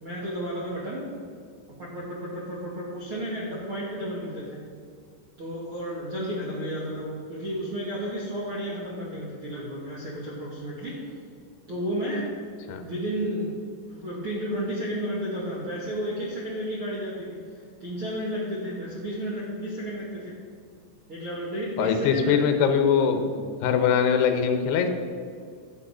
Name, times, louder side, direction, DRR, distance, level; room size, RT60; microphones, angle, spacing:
voice 1, 0.0-1.1 1.8-4.6 5.4-11.0 11.7-12.3 12.8-13.6 13.9-20.4 21.1-22.4, equal, 80° right, -5 dB, 1.2 m, -32 dB
voice 2, 21.8-24.9, left 7 dB, 75° left, 6 dB, 2.6 m, -22 dB
12.0 x 8.9 x 5.6 m, 2.1 s
omnidirectional pair, 5.4 m